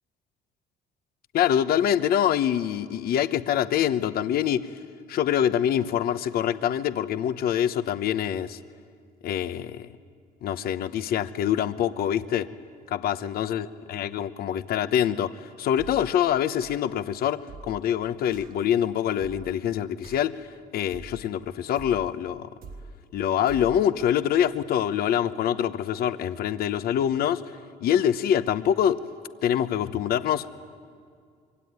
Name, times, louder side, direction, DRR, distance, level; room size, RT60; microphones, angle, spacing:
voice 1, 1.3-4.8 5.1-8.6 9.2-9.9 10.4-12.5 12.9-20.5 20.7-22.5 23.1-27.4 27.8-29.0 29.4-30.5, left 10 dB, 65° left, 1.0 m, -25 dB
sound 1, 15.8-16.2 16.6-17.0 17.5-17.9 18.3-18.6 19.2-19.6 20.0-20.4 20.9-21.3 21.8-22.2 22.6-23.0 23.5-23.9, right 3 dB, 60° right, 1.8 m, -44 dB
25.5 x 23.5 x 9.6 m
cardioid pair, 110°, 17 cm